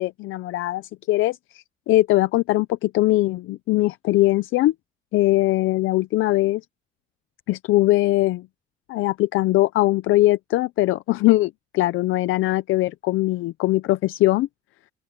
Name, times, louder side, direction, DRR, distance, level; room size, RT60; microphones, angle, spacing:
voice 1, 0.0-4.7 5.1-6.6 7.5-8.5 8.9-14.5, left 17 dB, 90° left, 0.6 m, -21 dB
open air
cardioid pair, 90°, 20 cm